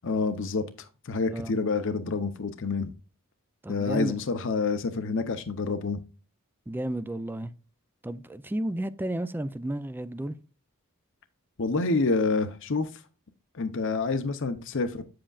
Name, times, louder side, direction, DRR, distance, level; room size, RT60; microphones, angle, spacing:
voice 1, 0.0-0.6 1.0-2.9 3.7-6.0 11.6-12.9 13.5-15.0, left 4 dB, 60° left, 0.7 m, -27 dB
voice 2, 3.6-4.2 6.7-7.5 8.0-10.4, right 1 dB, 10° right, 0.4 m, -32 dB
8.5 x 7.7 x 2.4 m
head